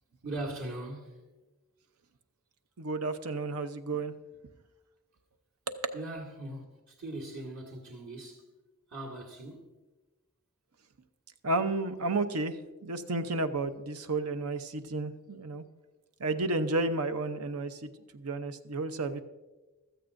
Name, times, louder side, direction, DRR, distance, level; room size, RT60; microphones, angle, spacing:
voice 1, 0.2-1.2 5.9-8.4 8.9-9.7, right 2 dB, 65° right, 2.0 m, -40 dB
voice 2, 2.8-4.1 5.7-5.9 11.4-15.6 16.2-19.2, right 2 dB, 90° right, 0.8 m, -32 dB
16.0 x 13.5 x 2.6 m
head